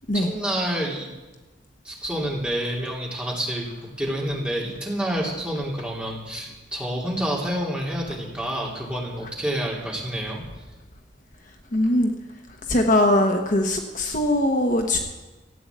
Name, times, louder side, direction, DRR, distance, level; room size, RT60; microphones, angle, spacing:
voice 1, 0.1-1.1 1.8-3.7 4.0-10.4, right 1 dB, 5° right, -4 dB, 3.0 m, -28 dB
voice 2, 11.7-12.1 12.7-15.0, left 1 dB, 45° left, 3 dB, 1.2 m, -21 dB
14.0 x 8.8 x 8.2 m, 1.2 s
head